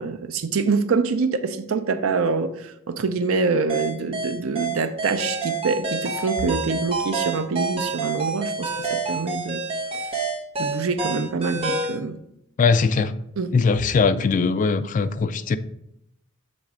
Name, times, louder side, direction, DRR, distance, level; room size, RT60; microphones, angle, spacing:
voice 1, 0.0-9.6 9.9-10.1 10.6-12.2 13.4-13.5, right 4 dB, 70° right, 9 dB, 0.5 m, -25 dB
sound 1, 3.7-12.0, right 4 dB, 25° right, 1.0 m, -28 dB
voice 2, 12.6-13.1 13.5-15.6, left 4 dB, 35° left, 12 dB, 0.3 m, -20 dB
7.0 x 3.2 x 4.9 m, 0.77 s
head